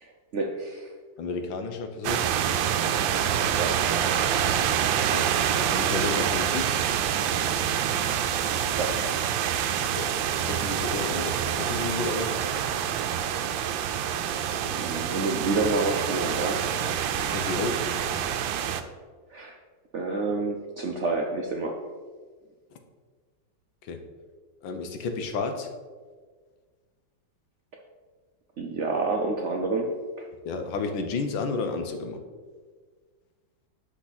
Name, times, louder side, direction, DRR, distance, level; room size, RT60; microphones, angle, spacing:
voice 1, 0.0-0.9 3.6-3.9 8.8-9.0 14.7-16.8 19.3-19.6 19.9-21.8 28.6-30.3, right 3 dB, 65° right, 1 dB, 0.7 m, -29 dB
voice 2, 1.2-2.3 5.0-6.8 9.8-10.2 10.4-12.4 17.2-17.8 23.8-24.0 24.6-25.7 30.4-32.2, left 4 dB, 85° left, 6 dB, 1.6 m, -32 dB
sound 1, 2.0-18.8, right 9 dB, 90° right, 1.3 m, -26 dB
8.3 x 5.8 x 4.1 m, 1.5 s
omnidirectional pair, 2.0 m